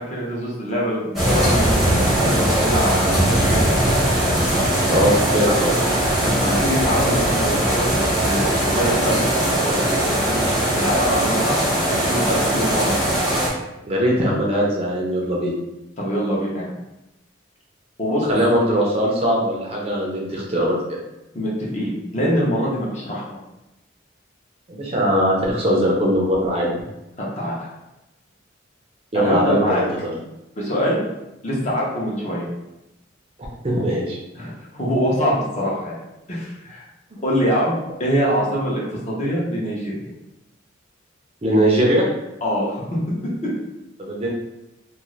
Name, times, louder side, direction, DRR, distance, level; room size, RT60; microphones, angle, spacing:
voice 1, 0.0-3.7 6.2-13.1 16.0-16.7 18.0-18.2 21.3-23.2 27.2-27.7 29.1-29.8 30.6-31.0 31.4-32.5 34.4-36.0 36.3-36.8 37.2-37.7 38.0-39.9 42.4-42.8, equal, 35° left, -5 dB, 0.7 m, -24 dB
sound 1, 1.1-13.5, right 1 dB, ahead, 0.7 m, -20 dB
voice 2, 4.9-5.7 13.8-15.6 18.3-21.0 24.7-26.7 29.1-30.1 33.6-34.2 41.4-42.1 44.0-44.3, equal, 30° right, -3 dB, 0.5 m, -20 dB
2.5 x 2.4 x 3.0 m, 0.93 s
head